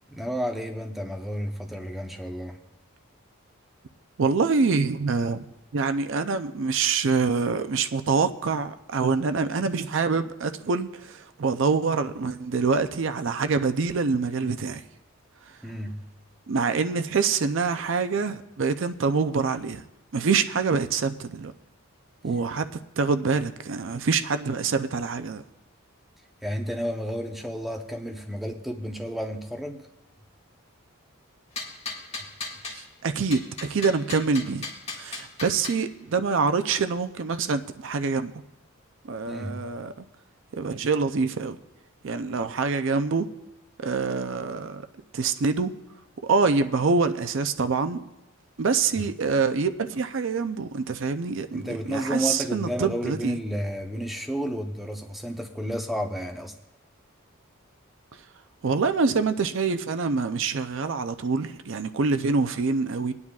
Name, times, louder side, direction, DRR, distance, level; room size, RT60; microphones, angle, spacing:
voice 1, 0.1-2.6 15.6-16.1 26.4-29.9 32.2-32.3 39.3-39.6 48.9-49.1 51.5-56.5, equal, ahead, 2 dB, 0.7 m, -31 dB
voice 2, 4.2-5.5 5.7-14.8 15.5-15.6 16.5-19.8 20.1-21.5 22.2-22.7 23.0-25.4 32.7-33.4 33.7-34.7 35.0-38.4 39.0-39.9 40.5-41.6 42.0-43.3 43.8-44.8 45.1-45.7 46.2-48.1 48.6-53.4 58.6-63.1, right 4 dB, 60° right, 10 dB, 0.5 m, -25 dB
sound 1, 31.6-32.8 33.3-35.8, left 3 dB, 30° left, 1.8 m, -36 dB
23.5 x 9.6 x 2.4 m, 0.94 s
head